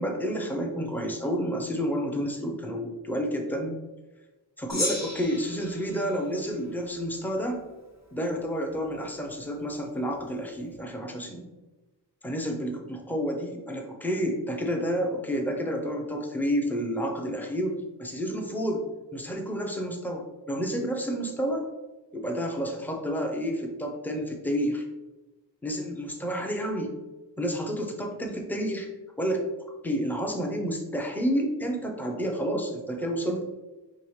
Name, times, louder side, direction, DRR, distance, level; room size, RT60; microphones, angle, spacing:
voice 1, 0.0-3.7 4.6-7.6 8.1-11.5 12.2-18.8 19.1-21.6 22.1-24.8 25.6-26.9 27.4-28.9 29.2-29.5 29.8-33.4, equal, 5° left, 2 dB, 0.6 m, -30 dB
Gong, 4.7-7.3, left 2 dB, 35° left, 1.0 m, -35 dB
4.7 x 3.1 x 3.2 m, 1.1 s
wide cardioid pair, 100°, 44 cm